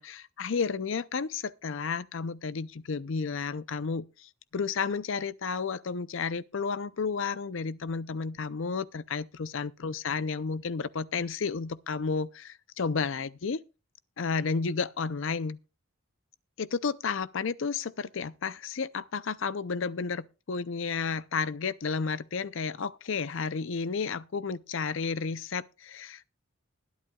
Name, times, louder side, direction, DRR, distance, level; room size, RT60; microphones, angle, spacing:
voice 1, 0.0-13.6 14.2-15.6 16.6-26.2, left 5 dB, 65° left, 0.6 m, -32 dB
20.5 x 10.5 x 2.3 m
head